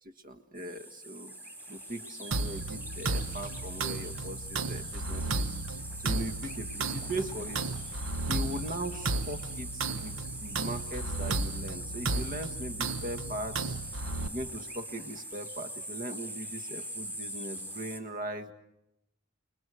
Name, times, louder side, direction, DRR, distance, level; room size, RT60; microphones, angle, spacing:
voice 1, 0.0-1.3 1.7-5.5 6.0-7.7 8.2-13.7 14.2-18.5, right 1 dB, 40° right, 9 dB, 1.5 m, -39 dB
sound 1, 0.6-18.0, right 1 dB, 10° right, 2.7 m, -42 dB
sound 2, 2.3-14.3, right 3 dB, 70° right, 0.9 m, -34 dB
28.5 x 21.5 x 6.4 m, 0.85 s
head